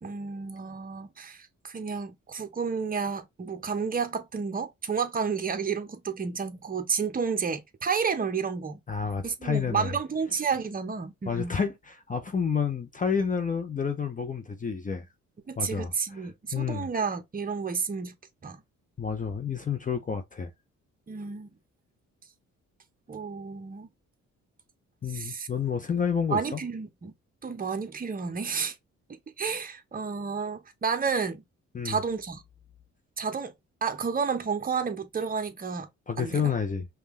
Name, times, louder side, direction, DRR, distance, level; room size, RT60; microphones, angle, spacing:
voice 1, 0.0-8.8 9.2-11.5 15.5-18.1 18.4-18.6 21.1-21.5 23.1-23.9 25.1-25.5 26.3-27.1 27.4-28.8 29.1-31.4 31.8-32.4 33.2-33.5 33.8-35.9 36.2-36.5, right 5 dB, 30° right, 0.9 m, -31 dB
voice 2, 8.9-9.9 11.3-15.1 15.6-16.2 16.5-16.9 19.0-20.5 25.0-26.6 31.7-32.0 36.1-36.9, left 6 dB, 25° left, 0.6 m, -29 dB
5.4 x 2.3 x 3.2 m
cardioid pair, 90°, 30 cm